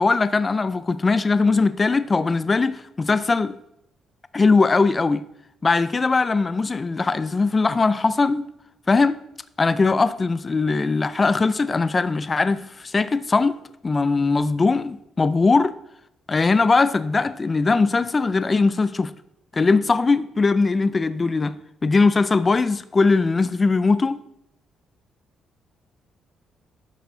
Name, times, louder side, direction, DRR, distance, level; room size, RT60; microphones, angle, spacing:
voice 1, 0.0-3.5 4.3-5.2 5.6-8.5 8.9-9.2 9.6-13.6 13.8-15.8 16.3-19.1 19.5-21.5 21.8-24.2, left 3 dB, 30° left, 0.4 m, -20 dB
12.0 x 4.6 x 3.8 m
cardioid pair, 90°, 0 cm